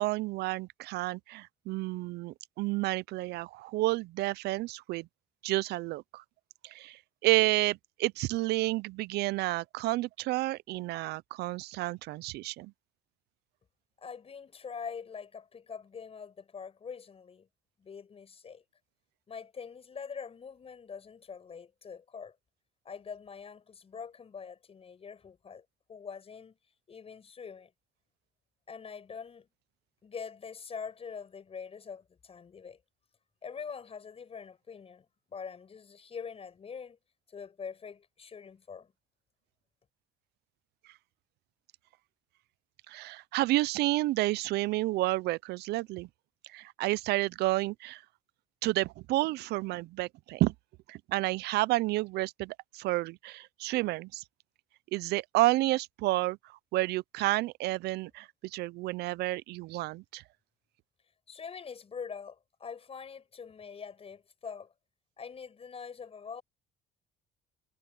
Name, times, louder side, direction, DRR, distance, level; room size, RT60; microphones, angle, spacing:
voice 1, 0.0-5.1 5.4-6.2 6.6-12.7 42.9-46.1 46.5-48.0 48.6-50.5 50.9-54.2 54.9-56.4 56.7-60.2, right 18 dB, 75° right, 0.4 m, -30 dB
voice 2, 14.0-17.5 17.8-18.6 19.3-22.4 22.9-26.6 26.9-27.7 28.7-29.5 30.0-32.8 33.4-37.0 37.3-38.9 61.3-64.7 65.2-66.4, left 6 dB, 35° left, 7.0 m, -44 dB
cardioid pair, 110°, 17 cm